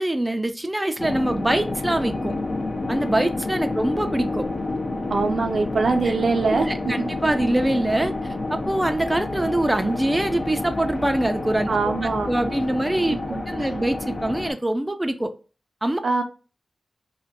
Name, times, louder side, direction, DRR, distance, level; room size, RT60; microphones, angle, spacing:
voice 1, 0.0-2.3 2.9-4.5 6.1-6.2 6.7-11.9 12.3-15.3 15.8-16.0, right 1 dB, 15° right, 0.4 m, -24 dB
sound 1, 1.0-14.5, left 2 dB, 50° left, 0.6 m, -29 dB
voice 2, 5.1-7.1 11.7-12.3 13.1-13.7 16.0-16.2, right 4 dB, 75° right, 0.5 m, -23 dB
2.5 x 2.2 x 3.8 m
cardioid pair, 60°, 0 cm